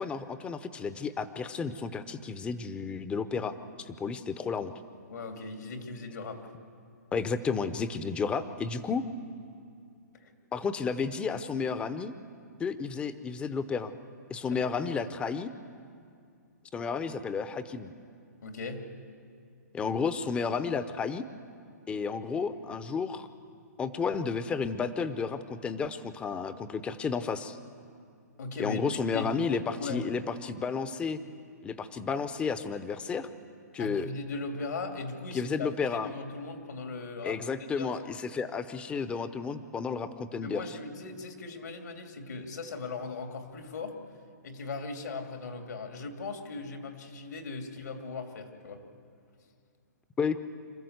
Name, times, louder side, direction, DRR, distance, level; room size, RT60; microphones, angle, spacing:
voice 1, 0.0-4.7 7.1-9.0 10.5-12.1 12.6-13.9 14.3-15.5 16.7-17.9 19.7-21.2 21.9-23.3 23.8-27.6 28.6-31.2 31.6-33.3 33.7-34.1 35.3-36.1 37.2-40.8 50.2-50.4, left 5 dB, 10° left, 12 dB, 0.7 m, -32 dB
voice 2, 5.1-6.4 10.2-10.3 14.5-14.9 18.4-18.9 28.4-28.8 29.1-30.0 33.8-37.4 37.8-37.9 40.4-43.9 44.4-48.8, left 3 dB, 75° left, 4 dB, 2.8 m, -38 dB
26.5 x 14.0 x 8.0 m, 2.3 s
hypercardioid pair, 150°, 9 cm